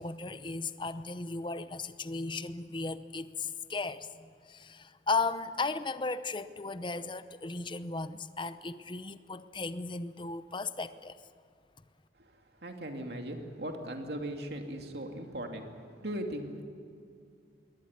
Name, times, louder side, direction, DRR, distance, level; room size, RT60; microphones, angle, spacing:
voice 1, 0.0-11.2, left 3 dB, 30° left, 12 dB, 0.8 m, -36 dB
voice 2, 12.6-15.7 16.0-16.6, right 1 dB, 70° right, 3 dB, 2.7 m, -38 dB
22.5 x 18.0 x 9.7 m, 2.3 s
head